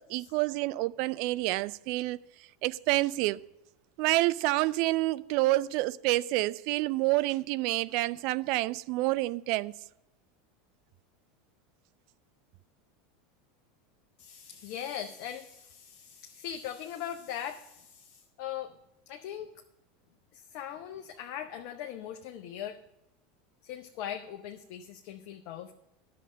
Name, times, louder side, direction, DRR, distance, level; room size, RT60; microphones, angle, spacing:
voice 1, 0.0-2.2 2.6-3.4 4.0-9.7, right 19 dB, 55° right, 0.3 m, -28 dB
voice 2, 14.2-18.7 19.1-19.5 20.3-22.8 23.6-25.7, left 10 dB, 55° left, 0.6 m, -40 dB
11.0 x 6.6 x 7.3 m
figure-of-eight pair, 80°, 0 cm